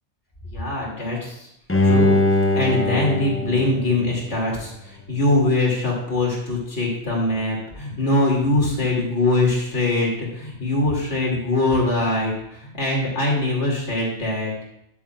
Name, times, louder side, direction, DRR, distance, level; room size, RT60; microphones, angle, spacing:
voice 1, 0.5-1.5 1.8-2.2 2.5-14.5, left 2 dB, 70° left, -3 dB, 2.8 m, -22 dB
Bowed string instrument, 1.7-4.8 5.2-5.3, left 2 dB, 20° left, 0.3 m, -21 dB
10.0 x 9.0 x 2.3 m, 0.78 s
omnidirectional pair, 1.2 m